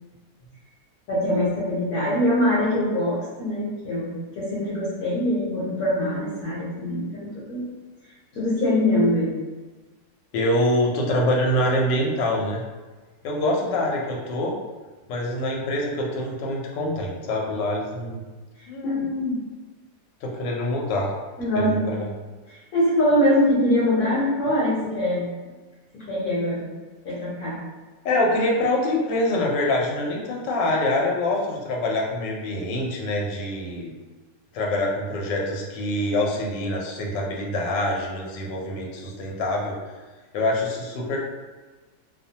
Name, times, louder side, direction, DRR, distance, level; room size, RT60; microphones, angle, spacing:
voice 1, 1.1-7.6 8.3-9.3 18.6-19.4 21.4-22.0 22.5-25.3 25.9-26.6 27.0-27.6, left 1 dB, 65° left, -8 dB, 1.1 m, -23 dB
voice 2, 10.3-12.6 13.2-14.5 15.1-18.2 18.7-19.1 20.2-21.1 21.6-22.1 28.0-33.9 34.5-39.9 40.3-41.2, left 1 dB, 85° left, -1 dB, 1.2 m, -25 dB
2.8 x 2.1 x 2.7 m, 1.3 s
omnidirectional pair, 1.9 m